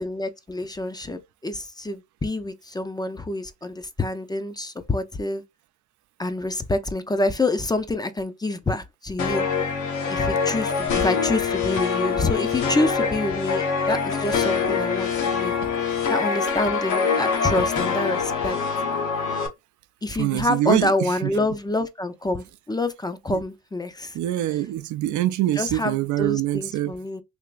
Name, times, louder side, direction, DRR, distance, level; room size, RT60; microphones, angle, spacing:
voice 1, 0.0-5.4 6.2-9.5 10.1-15.5 16.1-18.6 20.0-24.2 25.5-27.2, left 2 dB, 15° left, 0.4 m, -27 dB
sound 1, 9.2-19.5, left 5 dB, 75° left, 1.0 m, -24 dB
voice 2, 20.2-20.9 21.2-21.3 23.3-23.4 24.1-26.9, right 14 dB, 75° right, 0.5 m, -24 dB
3.4 x 2.9 x 2.4 m
cardioid pair, 90°, 30 cm